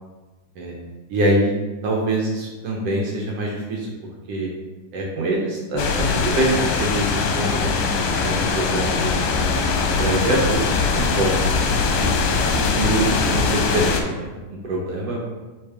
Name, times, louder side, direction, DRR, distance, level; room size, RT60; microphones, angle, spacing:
voice 1, 1.1-1.5 1.8-3.9 4.3-4.5 4.9-5.8 6.1-9.5 9.8-11.4 12.0-12.1 12.5-15.3, right 1 dB, 70° right, -2 dB, 1.5 m, -24 dB
sound 1, 5.8-14.0, left 4 dB, 85° left, 2.5 m, -21 dB
9.4 x 3.6 x 3.5 m, 1.2 s
omnidirectional pair, 3.8 m